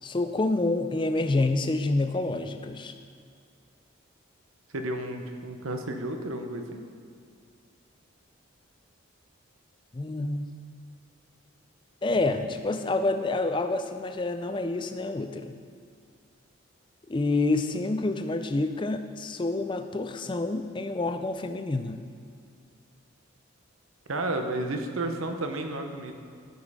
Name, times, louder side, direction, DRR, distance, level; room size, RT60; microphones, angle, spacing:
voice 1, 0.0-2.9 9.9-10.5 12.0-15.6 17.1-22.0, left 2 dB, 25° left, 8 dB, 0.4 m, -28 dB
voice 2, 4.7-6.8 24.1-26.1, right 2 dB, 80° right, 5 dB, 0.8 m, -32 dB
12.5 x 5.4 x 4.9 m, 2.2 s
head